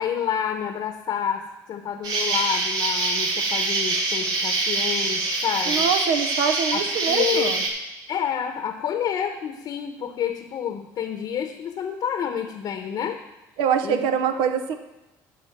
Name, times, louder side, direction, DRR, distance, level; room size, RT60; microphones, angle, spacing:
voice 1, 0.0-5.8 6.7-7.5 8.1-13.2 13.8-14.0, left 8 dB, 55° left, 7 dB, 0.9 m, -29 dB
Insect, 2.0-7.7, right 2 dB, 55° right, 1.8 m, -24 dB
voice 2, 5.7-7.6 13.6-14.7, right 7 dB, 75° right, 8 dB, 0.8 m, -24 dB
12.0 x 4.4 x 6.0 m, 0.99 s
supercardioid pair, 80°, 8 cm